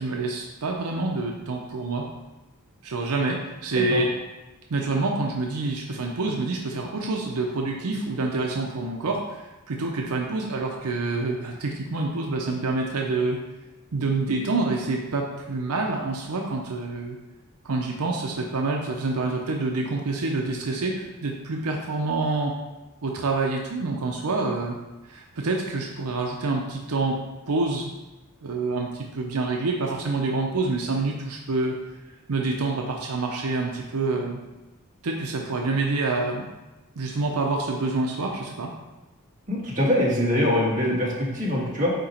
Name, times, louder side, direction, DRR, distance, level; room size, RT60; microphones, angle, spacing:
voice 1, 0.0-2.1 2.8-4.1 4.7-13.4 13.9-17.2 17.6-22.5 23.0-24.8 25.0-27.2 27.5-27.9 28.4-31.8 32.1-34.4 35.0-36.5 37.0-38.7, right 3 dB, 85° right, 1 dB, 0.7 m, -27 dB
voice 2, 39.5-41.9, left 1 dB, 35° right, -5 dB, 1.7 m, -23 dB
8.8 x 2.9 x 4.3 m, 1.1 s
head